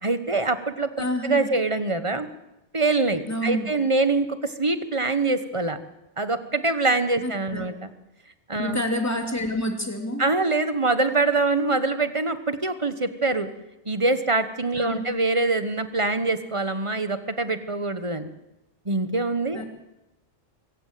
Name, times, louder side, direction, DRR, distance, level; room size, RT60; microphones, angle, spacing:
voice 1, 0.0-2.3 2.7-5.8 6.2-7.9 8.5-8.8 10.2-13.5 13.8-18.3 18.8-19.6, right 3 dB, 25° right, 10 dB, 1.3 m, -24 dB
voice 2, 1.0-1.5 3.3-3.7 7.2-7.7 8.6-10.3 14.8-15.1 19.5-19.7, equal, 10° left, 3 dB, 2.9 m, -28 dB
24.5 x 15.5 x 7.6 m, 0.92 s
omnidirectional pair, 1.3 m